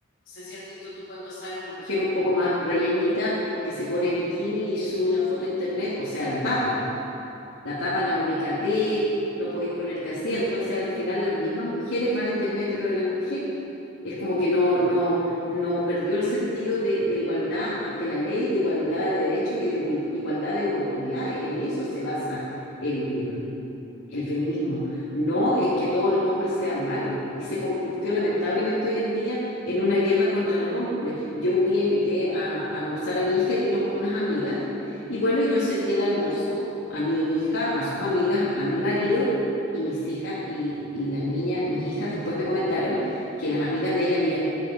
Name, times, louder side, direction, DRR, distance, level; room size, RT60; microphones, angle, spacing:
voice 1, 0.3-6.8 7.6-9.1 9.4-13.4 14.0-22.4 22.8-23.4 24.1-24.8 25.1-36.6 36.9-39.3 39.7-44.4, left 1 dB, 80° left, -11 dB, 2.5 m, -26 dB
11.0 x 9.9 x 5.9 m, 2.9 s
head